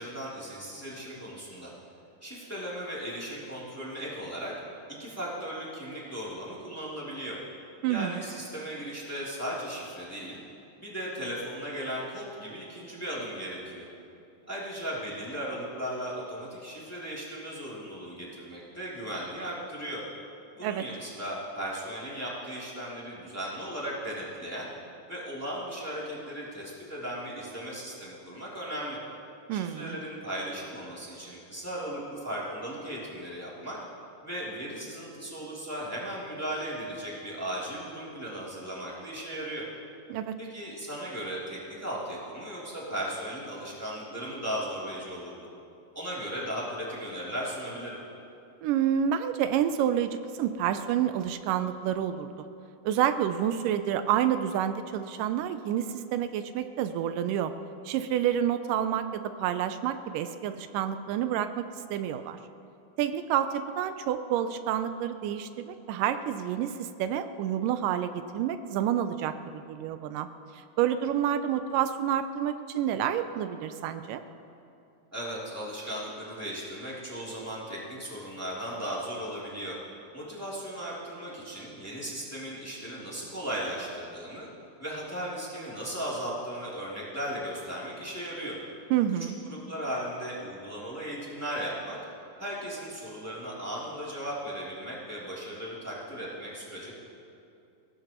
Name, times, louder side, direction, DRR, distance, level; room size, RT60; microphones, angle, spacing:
voice 1, 0.0-1.7 2.2-4.5 5.0-7.4 7.9-10.4 10.8-13.9 14.5-20.0 20.6-24.7 25.1-29.0 29.5-33.8 34.2-39.7 40.4-45.5 45.9-48.0 75.1-79.8 80.1-84.5 84.8-88.6 89.2-92.0 92.4-97.0, equal, 5° left, -7 dB, 2.4 m, -37 dB
voice 2, 7.8-8.2 20.6-20.8 29.5-30.0 40.1-40.4 48.6-52.3 52.8-57.5 57.9-61.7 61.9-62.4 63.0-70.3 70.5-74.2 88.9-89.4, right 10 dB, 85° right, 10 dB, 2.2 m, -29 dB
21.5 x 17.0 x 3.0 m, 2.6 s
omnidirectional pair, 3.8 m